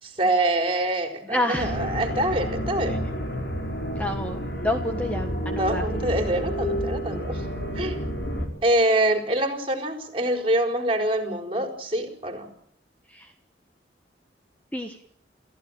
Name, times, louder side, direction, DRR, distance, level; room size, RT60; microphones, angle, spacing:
voice 1, 0.0-3.0 5.5-7.4 7.7-8.0 8.6-12.5, right 1 dB, 30° right, 5 dB, 4.4 m, -25 dB
voice 2, 1.3-1.7 2.9-3.0 4.0-5.8 13.1-13.3 14.7-15.0, left 1 dB, 10° left, 4 dB, 1.4 m, -29 dB
sound 1, 1.6-8.5, equal, 65° left, 4.9 m, -30 dB
28.0 x 15.5 x 8.9 m, 0.71 s
head